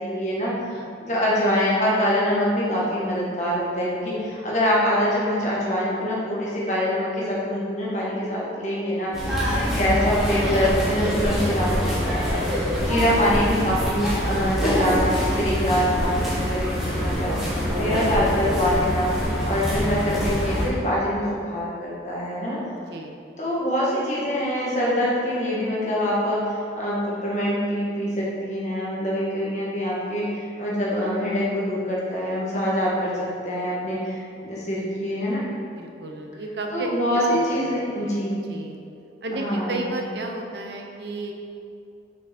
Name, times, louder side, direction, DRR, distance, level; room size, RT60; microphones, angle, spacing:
voice 1, 0.0-0.5 1.0-19.1 19.4-22.6 23.4-35.4 36.7-38.5 39.3-39.8, equal, 40° left, -6 dB, 1.7 m, -25 dB
sound 1, 9.1-20.7, equal, ahead, 1.5 m, -25 dB
voice 2, 12.6-13.3 19.2-19.5 22.9-23.2 35.8-38.8 39.2-41.3, right 2 dB, 70° right, 2 dB, 0.8 m, -34 dB
6.1 x 5.9 x 4.4 m, 2.5 s
head